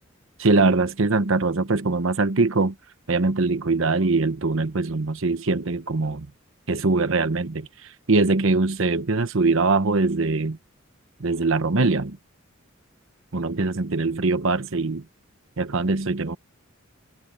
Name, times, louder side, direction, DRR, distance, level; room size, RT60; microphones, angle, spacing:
voice 1, 0.4-2.7 3.1-6.3 6.7-10.6 11.2-12.2 13.3-15.0 15.6-16.4, right 3 dB, 70° right, 1.1 m, -22 dB
open air
head